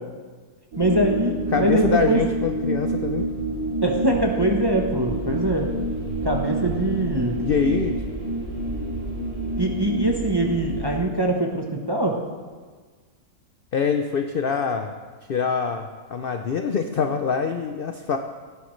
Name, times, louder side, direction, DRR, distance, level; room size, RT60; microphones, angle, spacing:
sound 1, 0.7-11.0, right 1 dB, 65° right, 3.5 m, -28 dB
voice 1, 0.8-2.2 3.8-5.7 6.2-7.4 9.6-12.2, right 1 dB, 20° right, 1 dB, 0.7 m, -23 dB
voice 2, 1.5-3.3 7.4-8.0 13.7-15.0 15.3-18.2, left 6 dB, 70° left, 6 dB, 0.5 m, -24 dB
17.5 x 11.0 x 3.2 m, 1.5 s
omnidirectional pair, 1.7 m